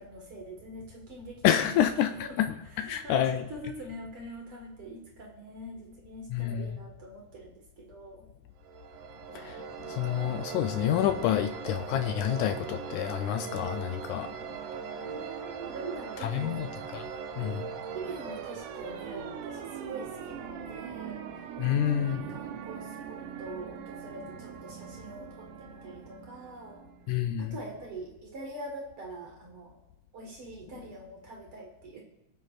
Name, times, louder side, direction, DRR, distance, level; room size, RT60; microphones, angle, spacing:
voice 1, 0.0-2.4 2.7-8.3 11.2-11.5 14.9-16.8 17.9-26.8 27.4-29.8 30.1-32.0, right 1 dB, 50° right, 0 dB, 2.2 m, -44 dB
voice 2, 1.4-2.1 2.4-2.5 2.8-3.4 6.3-6.8 9.4-14.6 16.2-16.7 16.9-17.0 17.4-17.7 21.6-22.3 27.1-27.5, left 10 dB, 80° left, 7 dB, 1.8 m, -28 dB
sound 1, 8.6-27.2, right 7 dB, 90° right, 2.4 m, -40 dB
23.5 x 8.4 x 2.5 m, 0.87 s
omnidirectional pair, 3.6 m